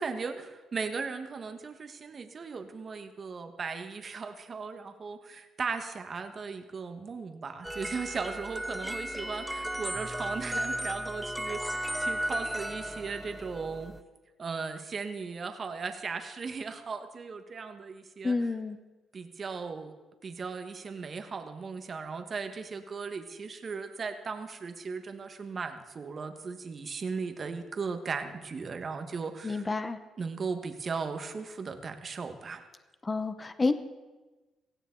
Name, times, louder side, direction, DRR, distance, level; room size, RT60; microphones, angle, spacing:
voice 1, 0.0-13.9 14.4-18.3 19.1-19.9 20.2-29.7 30.2-32.6, right 5 dB, 40° right, 7 dB, 1.4 m, -37 dB
sound 1, 7.6-14.0, right 1 dB, 5° right, 0.6 m, -35 dB
voice 2, 18.2-18.8 29.4-30.0 33.0-33.7, left 3 dB, 25° left, 10 dB, 0.9 m, -29 dB
17.0 x 16.0 x 3.9 m, 1.2 s
cardioid pair, 90°, 0 cm